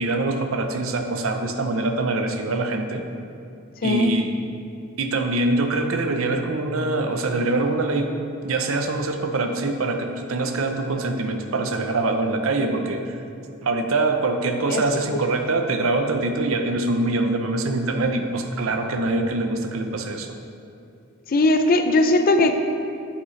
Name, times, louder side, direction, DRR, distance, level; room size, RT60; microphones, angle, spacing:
voice 1, 0.0-3.1 3.8-4.4 5.0-8.1 8.4-13.2 13.6-20.3, right 2 dB, 80° right, 5 dB, 0.7 m, -24 dB
voice 2, 3.8-4.1 14.7-14.8 21.3-22.5, left 2 dB, 45° left, 7 dB, 0.5 m, -18 dB
8.5 x 7.3 x 3.2 m, 2.6 s
head